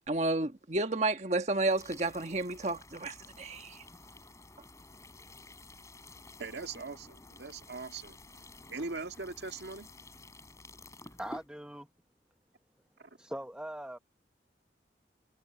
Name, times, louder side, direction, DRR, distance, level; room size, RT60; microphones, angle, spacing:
voice 1, 0.0-3.8, right 2 dB, 40° right, 1.4 m, -31 dB
sound 1, 1.5-11.5, left 2 dB, 15° left, 5.1 m, -52 dB
voice 2, 6.4-8.2 8.7-9.9 13.0-13.1, right 3 dB, 70° right, 1.8 m, -41 dB
voice 3, 11.2-11.9 13.2-14.0, right 1 dB, 5° right, 1.0 m, -41 dB
head